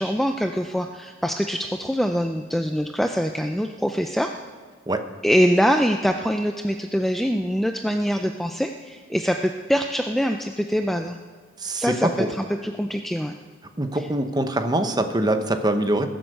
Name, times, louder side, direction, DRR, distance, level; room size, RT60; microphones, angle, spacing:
voice 1, 0.0-4.3 5.2-11.2 11.8-12.1 12.4-13.3, equal, ahead, 5 dB, 0.4 m, -24 dB
voice 2, 11.6-12.3 13.8-16.1, right 1 dB, 20° right, 8 dB, 0.9 m, -23 dB
20.5 x 8.0 x 6.6 m, 1.5 s
head